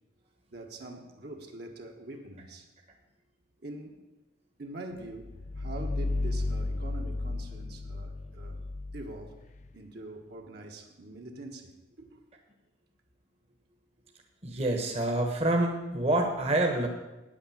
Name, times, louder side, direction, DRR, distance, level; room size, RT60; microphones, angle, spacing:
voice 1, 0.5-2.7 3.6-4.1 4.6-8.6 8.9-9.4 9.7-12.2, right 2 dB, 55° right, 2 dB, 1.4 m, -44 dB
sound 1, 5.0-9.7, left 2 dB, 40° left, 0.5 m, -33 dB
voice 2, 14.4-16.9, right 1 dB, 35° right, 2 dB, 1.2 m, -27 dB
9.3 x 8.9 x 7.2 m, 1.0 s
head